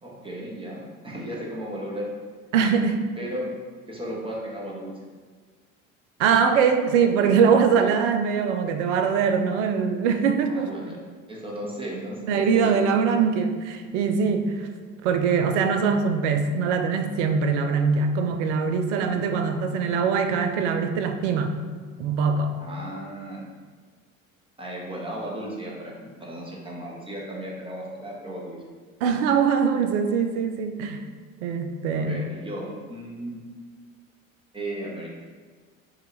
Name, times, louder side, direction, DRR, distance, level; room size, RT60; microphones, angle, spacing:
voice 1, 0.0-2.1 3.2-3.5 3.9-4.9 10.5-11.0 11.3-12.8 19.0-19.1 22.6-23.4 24.6-28.6 31.9-33.4 34.5-35.1, right 1 dB, 15° right, -3 dB, 1.0 m, -35 dB
voice 2, 2.5-3.0 6.2-10.7 12.3-14.7 15.0-21.5 22.0-22.5 29.0-31.0 31.4-32.3, right 6 dB, 60° right, 7 dB, 0.5 m, -22 dB
5.5 x 2.4 x 3.1 m, 1.5 s
figure-of-eight pair, 65°, 41 cm